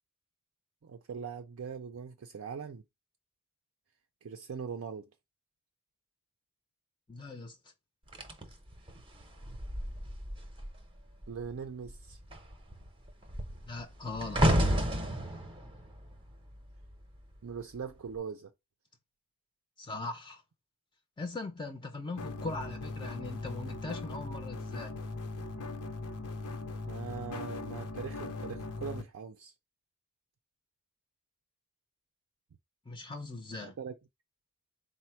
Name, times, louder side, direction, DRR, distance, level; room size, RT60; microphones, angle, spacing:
voice 1, 0.8-2.8 4.2-5.1 8.9-9.0 9.5-9.6 11.3-12.2 17.4-18.5 26.9-29.5 33.6-34.0, right 6 dB, 65° right, 0.4 m, -41 dB
voice 2, 7.1-7.6 13.6-14.5 19.8-20.4 21.2-24.9 32.9-33.8, left 3 dB, 20° left, 0.5 m, -40 dB
sound 1, 8.1-10.8 11.1-11.5 11.8-17.2 17.9-18.2, equal, 25° right, 0.7 m, -32 dB
sound 2, 22.2-29.0, left 3 dB, 85° left, 0.6 m, -39 dB
4.1 x 2.1 x 4.3 m
head